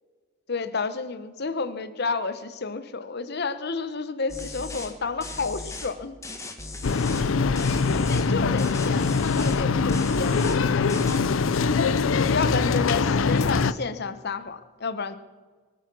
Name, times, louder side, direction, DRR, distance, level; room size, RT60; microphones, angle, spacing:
voice 1, 0.5-6.2 7.9-10.9 12.2-15.2, left 4 dB, 55° left, 10 dB, 1.1 m, -30 dB
sound 1, 4.3-4.9 5.2-5.9 6.2-7.3 7.6-8.3 8.6-9.6 9.9-10.6 10.9-11.2, left 2 dB, 15° left, 1.6 m, -37 dB
sound 2, 6.8-13.7, left 4 dB, 75° left, 0.5 m, -23 dB
23.5 x 9.4 x 6.1 m, 1.4 s
head